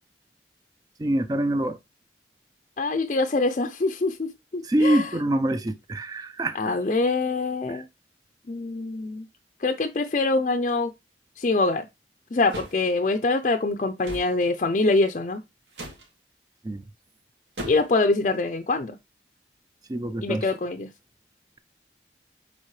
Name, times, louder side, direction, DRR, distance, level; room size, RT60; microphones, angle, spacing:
voice 1, 1.0-1.8 4.6-6.8 7.7-7.8 16.6-16.8 19.9-20.5, right 1 dB, 20° right, 0.3 m, -25 dB
voice 2, 2.8-5.1 6.5-7.8 8.5-9.3 9.6-10.9 11.4-11.9 12.3-15.4 17.7-19.0 20.2-20.9, left 3 dB, 40° left, 0.5 m, -24 dB
sound 1, 12.5-12.8 14.0-14.3 15.7-16.1 17.6-18.0, equal, 85° right, 2.3 m, -36 dB
7.3 x 4.2 x 3.1 m
head